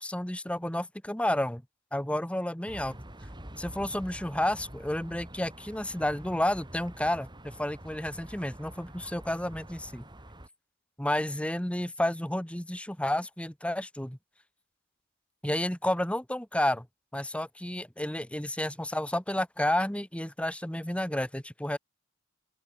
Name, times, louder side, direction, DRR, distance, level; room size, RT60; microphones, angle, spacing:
voice 1, 0.0-1.6 1.9-3.0 3.6-10.1 11.0-14.2 15.4-16.9 17.1-21.8, left 1 dB, 5° left, 1.4 m, -31 dB
sound 1, 2.7-10.5, right 1 dB, 20° right, 6.6 m, -47 dB
open air
head